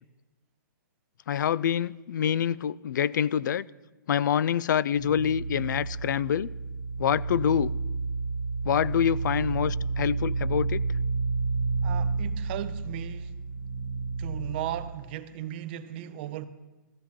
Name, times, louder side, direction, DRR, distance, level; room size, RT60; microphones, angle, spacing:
voice 1, 1.3-3.6 4.1-6.5 7.0-7.7 8.6-10.8, left 9 dB, 60° left, 0.4 m, -26 dB
sound 1, 4.9-14.9, right 4 dB, 75° right, 1.5 m, -30 dB
voice 2, 11.8-13.4 14.2-16.5, right 12 dB, 30° right, 0.5 m, -36 dB
16.0 x 14.0 x 2.9 m
hypercardioid pair, 165°, 11 cm